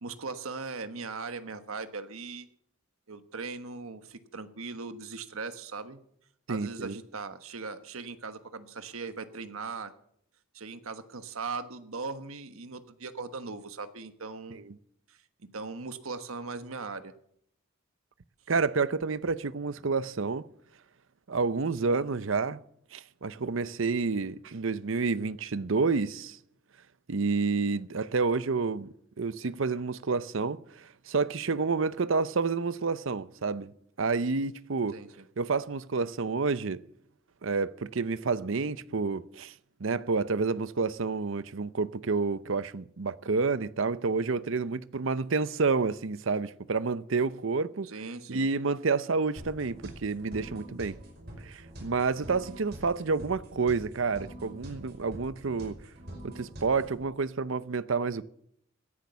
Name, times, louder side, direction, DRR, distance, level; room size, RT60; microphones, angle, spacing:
voice 1, 0.0-2.5 3.1-6.0 6.5-9.9 10.5-14.6 15.1-17.1 34.9-35.3 47.8-48.5, right 4 dB, 85° right, 1.3 m, -39 dB
voice 2, 6.5-7.0 14.6-14.7 18.5-20.4 21.3-22.6 22.9-26.4 27.1-28.9 29.2-33.7 34.0-35.0 35.4-36.8 37.4-39.5 39.8-47.9 48.3-51.0 51.4-55.8 56.2-58.2, right 4 dB, 70° right, 0.7 m, -29 dB
sound 1, 49.4-57.0, equal, 50° right, 5.5 m, -45 dB
17.0 x 10.5 x 6.9 m
head